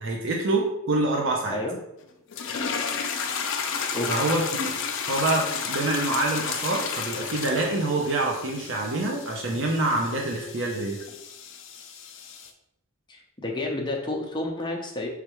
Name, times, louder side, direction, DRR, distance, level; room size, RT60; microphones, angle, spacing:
voice 1, 0.0-1.6 4.1-4.8 5.1-11.0, right 2 dB, 60° right, -1 dB, 0.7 m, -26 dB
sound 1, 2.3-12.5, left 6 dB, 60° left, 0.5 m, -32 dB
voice 2, 3.9-4.3 13.1-15.1, left 2 dB, 20° left, 0 dB, 0.7 m, -30 dB
4.9 x 3.3 x 3.0 m, 0.84 s
head